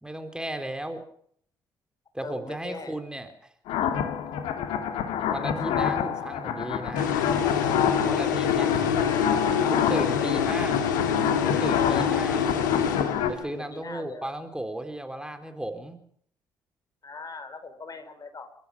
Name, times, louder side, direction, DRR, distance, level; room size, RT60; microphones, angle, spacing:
voice 1, 0.0-1.0 2.1-3.5 5.3-7.2 8.0-8.7 9.7-10.8 11.4-12.5 13.3-16.0, right 1 dB, 10° right, 7 dB, 3.7 m, -35 dB
voice 2, 2.2-2.9 8.0-9.2 9.8-9.9 10.2-10.5 13.5-14.3 17.0-18.5, left 4 dB, 40° left, 9 dB, 5.1 m, -40 dB
sound 1, 3.7-13.3, left 8 dB, 70° left, 2.6 m, -28 dB
sound 2, 7.0-13.6, left 7 dB, 85° left, 2.0 m, -26 dB
30.0 x 14.5 x 7.0 m, 0.63 s
hypercardioid pair, 45°, 10 cm